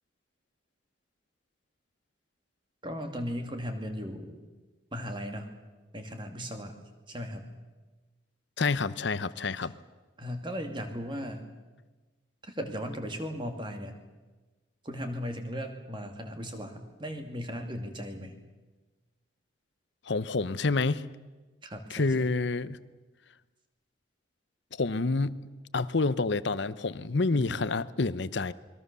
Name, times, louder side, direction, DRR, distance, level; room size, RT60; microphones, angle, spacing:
voice 1, 2.8-4.4 4.9-5.5 5.9-6.8 7.1-7.5 10.2-11.4 12.5-13.9 14.8-18.4 21.6-22.3 27.3-27.6, equal, 25° right, 2.5 m, -37 dB
voice 2, 8.6-9.7 20.1-21.0 21.9-22.8 24.8-25.4 25.7-28.5, left 3 dB, 65° left, 0.8 m, -28 dB
28.0 x 22.0 x 6.9 m
head